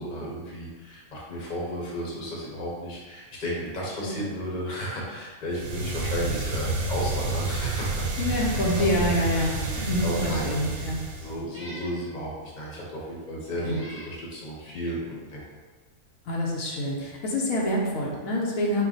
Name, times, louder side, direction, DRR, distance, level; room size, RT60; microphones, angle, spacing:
voice 1, 0.0-15.4, equal, 40° left, -4 dB, 0.9 m, -34 dB
sound 1, 5.5-11.4, right 3 dB, 75° right, 1.1 m, -30 dB
voice 2, 8.2-11.0 13.6-13.8 16.3-18.9, left 1 dB, 80° left, -2 dB, 1.1 m, -26 dB
Meow, 8.4-8.9 9.3-9.4 10.0-10.5 11.5-12.0 12.9-13.0 13.6-14.1, equal, 10° right, 0.9 m, -45 dB
4.5 x 2.2 x 3.9 m, 1.4 s
omnidirectional pair, 1.5 m